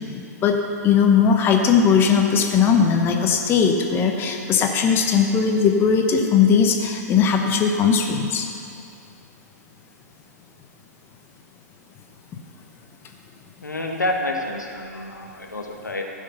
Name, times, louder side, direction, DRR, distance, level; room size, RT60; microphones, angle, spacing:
voice 1, 0.8-8.4, left 6 dB, 25° left, 3 dB, 1.0 m, -18 dB
voice 2, 13.6-16.0, left 1 dB, 90° left, 2 dB, 1.4 m, -28 dB
14.5 x 6.4 x 5.7 m, 2.5 s
figure-of-eight pair, 115°, 9 cm